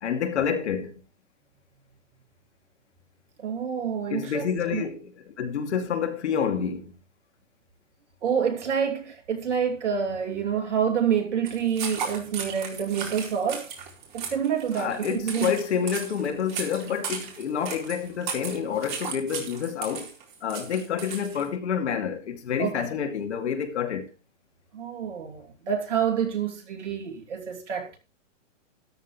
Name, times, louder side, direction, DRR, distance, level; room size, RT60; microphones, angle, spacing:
voice 1, 0.0-0.9 4.1-6.9 14.8-20.1 20.4-24.1, left 7 dB, 60° left, 2.7 m, -28 dB
voice 2, 3.4-4.8 8.2-13.7 14.1-15.5 22.6-22.9 24.7-28.0, right 7 dB, 65° right, 2.9 m, -27 dB
sound 1, 11.5-21.5, right 6 dB, 40° right, 4.3 m, -36 dB
13.5 x 12.5 x 3.2 m
hypercardioid pair, 150°, 37 cm